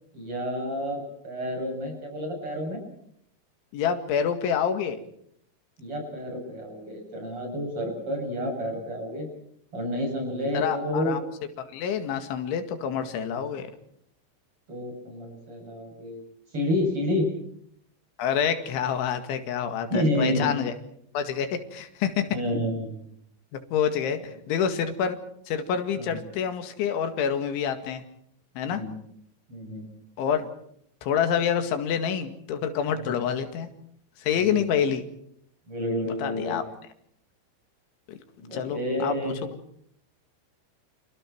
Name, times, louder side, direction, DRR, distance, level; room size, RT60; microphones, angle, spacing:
voice 1, 0.1-2.8 5.8-9.3 9.7-11.2 14.7-16.2 16.5-17.3 19.9-20.5 22.3-23.0 26.1-26.2 28.7-28.9 29.5-29.8 32.9-33.0 34.4-34.7 35.7-36.6 38.4-39.4, left 1 dB, 30° right, 2 dB, 8.8 m, -29 dB
voice 2, 3.7-5.0 10.5-11.2 11.6-13.7 18.2-20.7 21.1-22.3 23.7-25.2 25.5-28.0 28.6-28.8 30.2-30.5 31.0-33.7 34.2-35.0 36.1-36.6 38.1-38.2 38.5-39.3, left 8 dB, 85° left, 7 dB, 4.4 m, -27 dB
30.0 x 28.0 x 4.6 m, 0.68 s
omnidirectional pair, 5.3 m